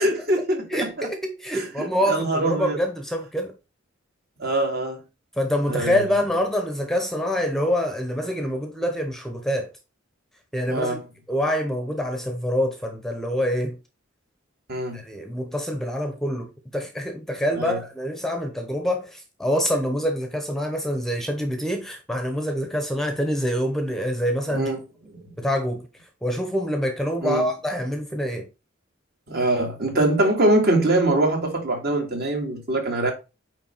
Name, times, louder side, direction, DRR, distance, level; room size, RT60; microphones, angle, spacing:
voice 1, 0.0-1.1 1.5-2.8 4.4-5.0 5.7-6.0 10.7-11.0 14.7-15.0 17.5-17.8 24.5-24.8 25.1-25.4 27.2-27.5 29.3-33.1, right 1 dB, 50° right, 2.3 m, -23 dB
voice 2, 0.7-3.5 5.4-9.7 10.5-11.0 11.3-13.8 14.9-24.7 25.4-25.9 26.2-28.5, equal, ahead, 0.9 m, -26 dB
8.8 x 3.4 x 4.4 m
head